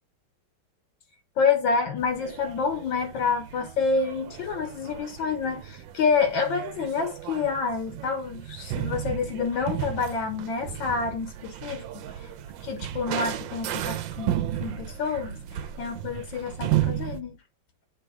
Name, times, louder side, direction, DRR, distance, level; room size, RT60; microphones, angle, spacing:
voice 1, 1.4-12.3 12.6-17.4, left 5 dB, 75° left, 1.5 m, -28 dB
sound 1, 2.0-17.2, right 12 dB, 75° right, 1.3 m, -34 dB
8.5 x 3.3 x 3.3 m
omnidirectional pair, 2.1 m